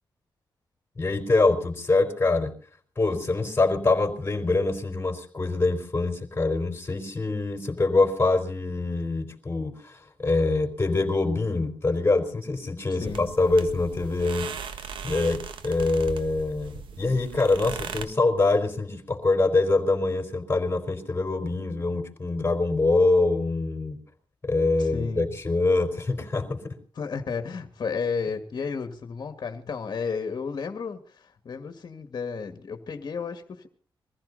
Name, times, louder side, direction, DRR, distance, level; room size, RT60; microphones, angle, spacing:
voice 1, 1.0-2.5 3.0-14.5 15.0-24.0 24.4-26.7, left 3 dB, 25° left, 6 dB, 4.1 m, -24 dB
voice 2, 12.9-13.3 24.8-25.3 27.0-33.7, left 5 dB, 50° left, 7 dB, 2.0 m, -33 dB
sound 1, 13.0-18.1, right 7 dB, 85° right, 1.4 m, -38 dB
23.0 x 15.0 x 4.0 m, 0.41 s
cardioid pair, 90°, 8 cm